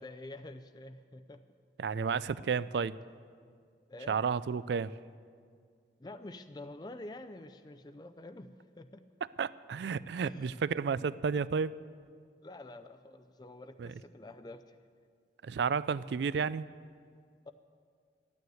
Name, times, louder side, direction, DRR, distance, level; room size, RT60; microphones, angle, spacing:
voice 1, 0.0-1.4 3.9-4.2 6.0-9.1 10.2-10.6 12.4-14.8 17.5-17.6, left 2 dB, 25° left, 9 dB, 0.4 m, -48 dB
voice 2, 1.8-2.9 4.1-4.9 9.4-11.7 13.8-13.9 15.4-16.7, right 6 dB, 70° right, 18 dB, 0.4 m, -32 dB
13.0 x 9.5 x 9.3 m, 2.1 s
head